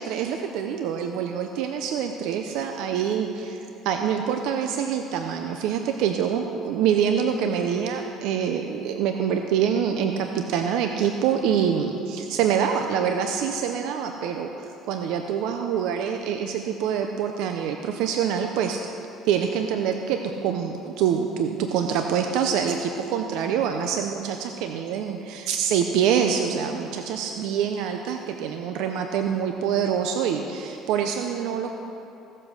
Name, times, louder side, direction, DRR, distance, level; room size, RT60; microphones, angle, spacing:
voice 1, 0.0-18.8 19.2-31.7, right 8 dB, 75° right, 5 dB, 0.7 m, -25 dB
16.5 x 7.6 x 6.4 m, 2.8 s
cardioid pair, 130°, 0 cm